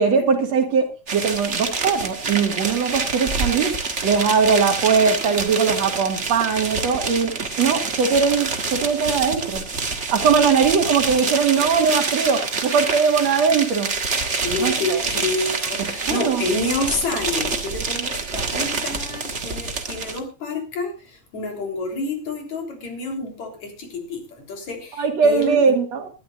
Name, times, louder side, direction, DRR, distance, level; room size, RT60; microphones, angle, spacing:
voice 1, 0.0-3.7 4.0-7.3 7.6-9.6 10.1-13.9 14.6-15.0 15.8-16.4 24.9-26.1, right 5 dB, 60° right, 5 dB, 3.0 m, -20 dB
sound 1, 1.1-20.2, right 4 dB, 30° right, 1.5 m, -27 dB
voice 2, 14.4-25.6, left 2 dB, 65° left, 3 dB, 4.9 m, -28 dB
19.5 x 12.5 x 2.5 m, 0.33 s
omnidirectional pair, 3.4 m